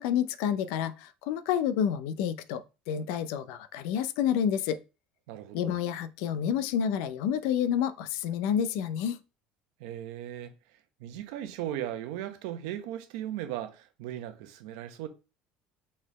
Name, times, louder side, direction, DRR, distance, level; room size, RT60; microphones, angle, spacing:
voice 1, 0.0-4.8 5.5-9.2, left 9 dB, 80° left, 0.5 m, -29 dB
voice 2, 5.3-5.8 9.8-10.5 11.0-15.1, right 12 dB, 85° right, 0.8 m, -37 dB
4.1 x 4.1 x 3.1 m
cardioid pair, 135°, 3 cm